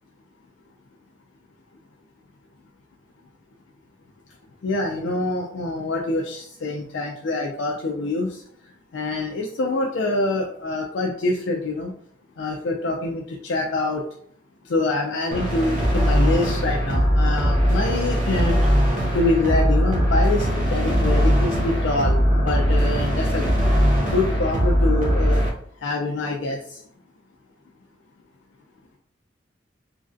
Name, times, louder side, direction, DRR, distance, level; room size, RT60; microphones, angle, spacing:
voice 1, 4.6-8.4 8.9-11.9 12.4-14.0 14.7-18.5 19.1-23.5 24.1-25.4 25.8-26.8, left 2 dB, 70° left, 0 dB, 0.4 m, -25 dB
sound 1, 15.3-25.5, equal, 40° right, 0.6 m, -20 dB
3.1 x 2.5 x 2.5 m, 0.64 s
head